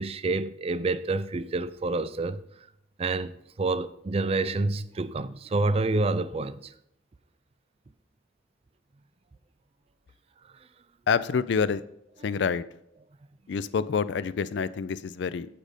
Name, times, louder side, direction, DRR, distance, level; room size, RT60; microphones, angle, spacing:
voice 1, 0.0-2.4 3.0-3.3 3.6-6.7, right 3 dB, 30° right, 0.4 m, -28 dB
voice 2, 11.1-11.8 12.2-12.6 13.5-15.5, left 6 dB, 65° left, 0.4 m, -27 dB
8.6 x 5.1 x 5.0 m
head